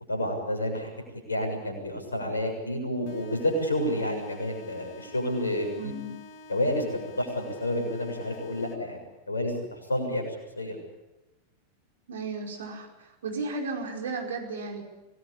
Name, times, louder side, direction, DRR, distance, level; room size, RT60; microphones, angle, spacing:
voice 1, 0.1-5.9 6.5-9.0 9.3-10.8, left 1 dB, 75° left, 4 dB, 6.8 m, -30 dB
sound 1, 3.1-9.1, left 2 dB, 50° left, 2.6 m, -48 dB
voice 2, 5.8-6.1 12.1-14.8, right 3 dB, 65° right, 2 dB, 5.0 m, -34 dB
26.5 x 20.0 x 8.6 m, 1.0 s
figure-of-eight pair, 90°, 0 cm